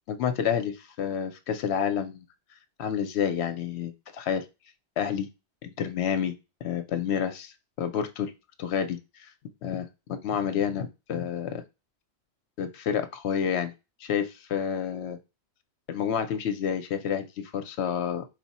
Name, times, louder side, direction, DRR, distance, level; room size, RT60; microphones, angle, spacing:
voice 1, 0.1-2.2 2.8-4.4 5.0-5.3 5.6-6.3 6.6-8.3 8.6-9.3 9.6-11.6 12.6-13.7 14.0-15.2 15.9-18.3, left 8 dB, 80° left, 9 dB, 0.9 m, -29 dB
4.4 x 2.1 x 4.1 m, 0.26 s
omnidirectional pair, 1.1 m